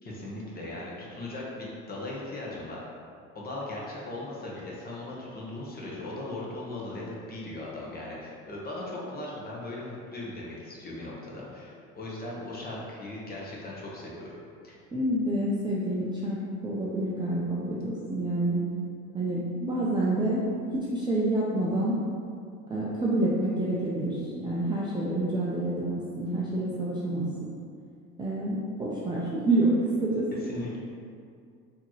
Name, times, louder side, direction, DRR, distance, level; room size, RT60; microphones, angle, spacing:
voice 1, 0.0-2.9 3.3-14.4 14.6-14.7 30.4-30.8, left 2 dB, 25° left, -5 dB, 1.0 m, -38 dB
voice 2, 14.9-16.4 16.6-18.6 19.1-20.4 20.7-21.9 22.7-27.2 28.2-29.7 30.0-30.2, right 1 dB, 15° right, -7 dB, 0.5 m, -28 dB
4.2 x 2.9 x 3.0 m, 2.3 s
supercardioid pair, 110°, 35 cm